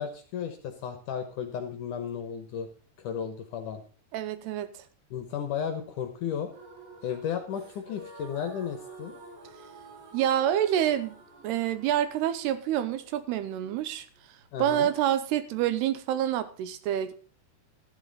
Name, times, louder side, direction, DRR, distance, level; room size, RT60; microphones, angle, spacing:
voice 1, 0.0-2.7 3.0-3.8 5.1-6.5 7.0-9.1 14.5-14.9, left 8 dB, 65° left, 7 dB, 2.2 m, -34 dB
voice 2, 4.1-4.7 10.1-11.2 11.4-14.1 14.6-17.2, right 11 dB, 80° right, 12 dB, 2.9 m, -27 dB
sound 1, 6.5-14.5, right 2 dB, 65° right, 4.3 m, -49 dB
12.5 x 11.0 x 4.0 m, 0.39 s
omnidirectional pair, 4.8 m